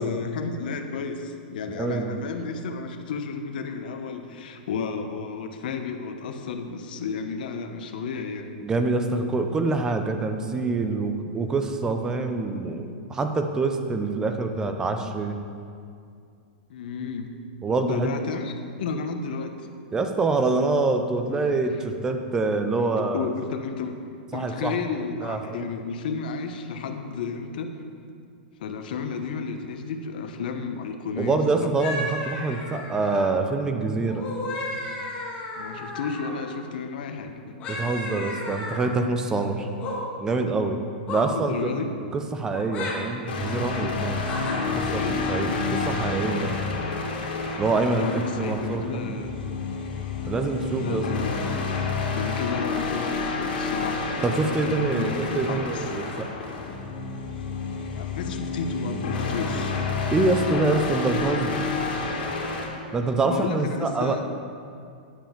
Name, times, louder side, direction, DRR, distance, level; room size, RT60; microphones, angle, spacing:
voice 1, 0.0-8.6 16.7-17.3 17.8-19.7 21.5-21.6 23.1-24.0 24.3-27.8 28.6-31.7 35.6-37.6 41.2-41.9 44.9-45.2 48.0-49.4 50.7-51.6 52.1-54.1 54.6-55.9 58.0-59.8 63.2-64.2, left 5 dB, 65° left, 6 dB, 1.0 m, -32 dB
voice 2, 1.7-2.2 8.6-15.4 17.6-18.1 19.9-23.3 24.3-24.7 25.2-25.7 31.2-34.3 37.7-39.7 40.2-41.7 42.1-44.2 44.8-45.0 45.3-46.5 47.6-49.0 50.3-51.1 54.2-56.5 60.1-61.6 62.9-64.2, right 3 dB, 10° right, 6 dB, 0.6 m, -25 dB
sound 1, 31.8-33.4 34.0-36.4 37.6-39.0 39.6-40.0 41.1-41.3 42.5-43.0 44.2-44.6, left 1 dB, 25° left, 2.0 m, -33 dB
sound 2, 43.3-62.7, left 4 dB, 85° left, 2.1 m, -29 dB
10.0 x 5.4 x 7.2 m, 2.3 s
supercardioid pair, 160°, 5 cm